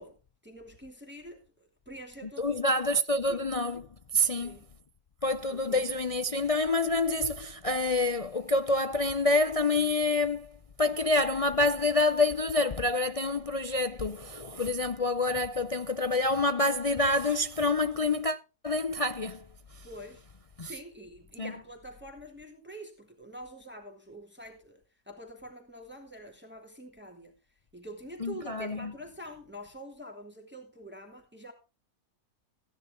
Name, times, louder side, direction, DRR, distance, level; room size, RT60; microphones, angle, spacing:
voice 1, 0.0-2.8 3.3-3.4 4.3-4.6 5.5-5.9 19.8-20.2 20.6-27.3 27.7-31.5, equal, 5° right, 2.7 m, -46 dB
voice 2, 2.4-3.8 4.1-4.6 5.2-10.5 10.8-18.4 18.6-19.4 20.6-20.7 21.4-21.5 28.2-28.9, left 2 dB, 65° left, 0.3 m, -27 dB
16.5 x 10.5 x 3.7 m
omnidirectional pair, 1.6 m